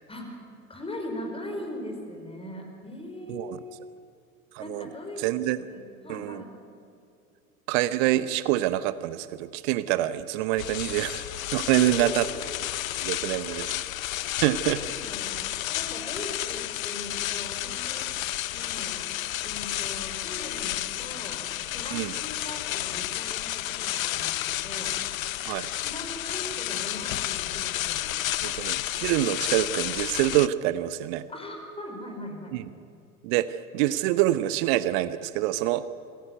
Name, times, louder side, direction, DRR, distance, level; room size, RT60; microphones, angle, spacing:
voice 1, 0.7-3.8 4.6-5.3 5.7-6.5 11.7-12.4 13.4-13.8 14.4-15.5 15.7-18.3 18.5-19.1 19.4-21.4 21.7-25.0 25.8-28.6 31.3-32.6, left 1 dB, 10° left, 3 dB, 4.9 m, -40 dB
voice 2, 3.3-3.6 4.5-4.9 5.2-5.6 6.1-6.4 7.7-12.3 13.0-13.7 14.4-14.9 21.9-22.1 25.5-25.7 28.4-31.3 32.5-32.7 33.2-35.9, right 15 dB, 45° right, 15 dB, 0.9 m, -26 dB
sound 1, 10.6-30.5, left 14 dB, 65° left, 0.7 m, -31 dB
26.0 x 15.5 x 9.3 m, 2.5 s
figure-of-eight pair, 75°, 45 cm